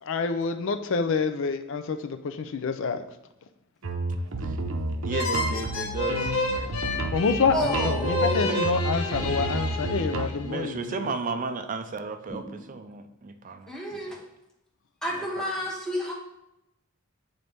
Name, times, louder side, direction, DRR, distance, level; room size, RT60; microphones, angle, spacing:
voice 1, 0.0-3.0 7.1-11.1, left 4 dB, 65° left, 9 dB, 0.5 m, -27 dB
sound 1, 3.8-10.3, right 2 dB, 75° right, 0.7 m, -30 dB
voice 2, 5.0-7.1 10.4-13.7 14.1-14.2, right 4 dB, 40° right, 8 dB, 0.4 m, -34 dB
sound 2, 5.1-10.6, left 2 dB, 80° left, 0.9 m, -30 dB
voice 3, 7.5-8.7 13.7-14.2 15.0-16.1, equal, 5° left, -3 dB, 0.9 m, -30 dB
sound 3, 12.3-13.2, equal, 20° left, 1.4 m, -45 dB
8.7 x 4.0 x 3.4 m, 0.88 s
head